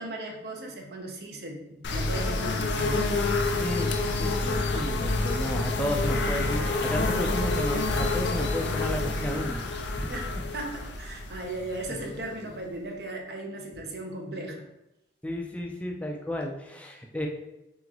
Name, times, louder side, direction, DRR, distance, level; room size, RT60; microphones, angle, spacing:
voice 1, 0.0-3.0 10.1-14.7, right 1 dB, 60° right, 1 dB, 0.7 m, -37 dB
sound 1, 1.8-12.5, left 2 dB, 75° left, 0.5 m, -28 dB
voice 2, 3.6-10.1 11.9-12.0 15.2-17.3, equal, 5° left, 1 dB, 0.4 m, -33 dB
3.5 x 3.0 x 3.8 m, 0.93 s
head